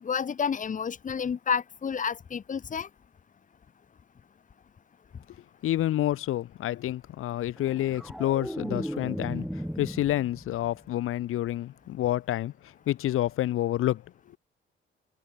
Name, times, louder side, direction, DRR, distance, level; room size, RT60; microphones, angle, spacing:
voice 1, 0.0-2.9, left 7 dB, 35° left, 1.9 m, -30 dB
voice 2, 5.6-9.5 9.8-12.5 12.9-14.0, left 13 dB, 80° left, 1.1 m, -28 dB
sound 1, 7.6-10.8 11.1-11.5, equal, ahead, 0.7 m, -36 dB
cardioid pair, 150°, 21 cm